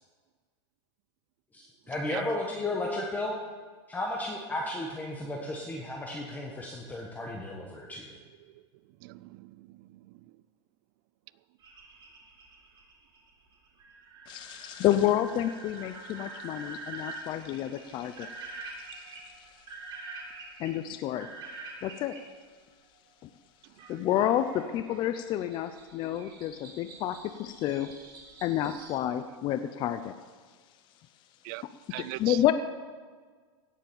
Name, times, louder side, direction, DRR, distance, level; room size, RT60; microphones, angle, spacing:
voice 1, 1.5-3.3 3.9-8.1, left 2 dB, 10° left, 1.4 m, -34 dB
voice 2, 9.0-10.2 31.4-31.6 31.9-32.5, right 20 dB, 50° right, 0.5 m, -40 dB
sound 1, 11.6-22.2 23.8-29.0, right 3 dB, 30° right, 3.7 m, -46 dB
voice 3, 14.3-19.5 20.6-21.3 21.8-22.2 23.2-23.3 23.9-27.9 28.4-30.1 32.0-32.5, left 12 dB, 35° left, 0.6 m, -30 dB
17.0 x 7.4 x 7.1 m
supercardioid pair, 140°, 14 cm